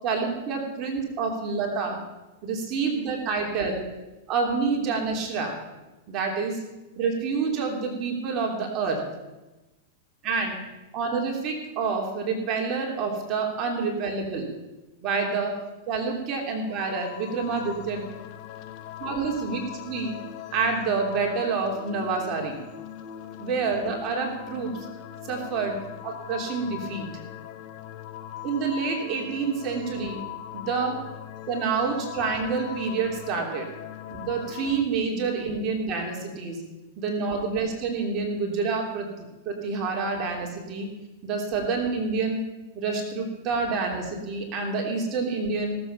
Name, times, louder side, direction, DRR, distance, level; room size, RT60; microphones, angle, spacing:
voice 1, 0.0-2.0 2.4-3.8 4.3-5.6 6.1-6.6 7.0-9.0 10.2-10.6 10.9-14.5 15.0-15.5 15.9-18.0 19.0-20.1 20.5-22.6 23.4-24.7 25.3-25.8 26.0-27.1 28.4-30.2 30.5-31.0 31.5-33.7 34.1-36.6 37.0-40.9 41.2-42.4 42.7-45.8, right 4 dB, 40° right, 0 dB, 3.2 m, -28 dB
sound 1, 16.7-34.8, left 11 dB, 50° left, 1.0 m, -40 dB
17.0 x 7.8 x 5.7 m, 1.1 s
hypercardioid pair, 115°, 0 cm